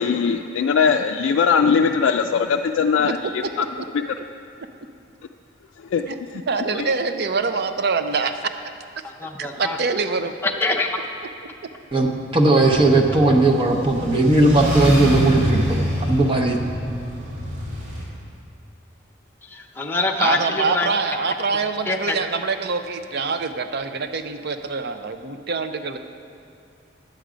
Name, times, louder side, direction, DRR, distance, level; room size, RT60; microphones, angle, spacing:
voice 1, 0.0-3.6 5.8-6.4 6.8-6.9, left 6 dB, 85° left, 4 dB, 0.3 m, -20 dB
voice 2, 6.5-8.3 9.4-10.7 14.3-14.5 20.2-26.0, right 4 dB, 55° right, 9 dB, 0.6 m, -25 dB
voice 3, 9.0-9.8 10.4-10.9 19.4-20.9 21.9-22.2, left 3 dB, 10° left, 0 dB, 0.6 m, -24 dB
voice 4, 12.3-16.6, right 2 dB, 30° right, 1 dB, 0.8 m, -17 dB
sound 1, 12.6-18.0, equal, 85° right, 2.6 m, -26 dB
10.5 x 8.0 x 5.0 m, 2.5 s
head